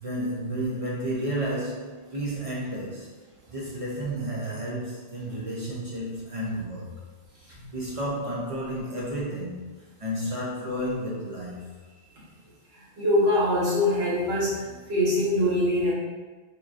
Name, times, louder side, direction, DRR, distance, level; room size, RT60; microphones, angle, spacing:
voice 1, 0.0-3.1 3.5-7.0 7.3-11.7, right 1 dB, 40° right, -6 dB, 0.5 m, -32 dB
voice 2, 13.0-15.9, left 1 dB, 65° right, -6 dB, 1.2 m, -23 dB
3.7 x 2.9 x 2.4 m, 1.3 s
omnidirectional pair, 1.2 m